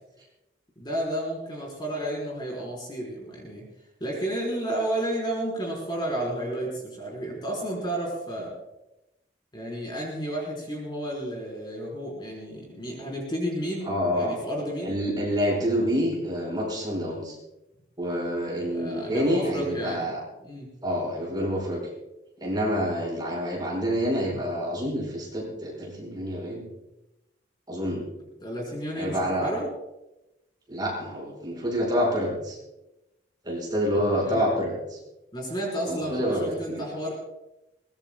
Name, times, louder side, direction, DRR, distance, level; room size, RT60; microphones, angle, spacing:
voice 1, 0.8-3.6 4.0-8.5 9.5-15.0 18.7-20.0 20.4-20.7 28.4-29.7 34.2-34.4 35.3-37.1, right 1 dB, 25° left, -3 dB, 4.5 m, -32 dB
voice 2, 13.9-14.4 14.8-17.4 18.0-20.2 20.8-21.8 22.4-26.7 27.7-28.0 28.9-29.5 30.7-32.6 33.4-35.0 35.9-36.8, equal, 20° right, -3 dB, 5.6 m, -27 dB
22.5 x 20.0 x 2.3 m, 0.95 s
head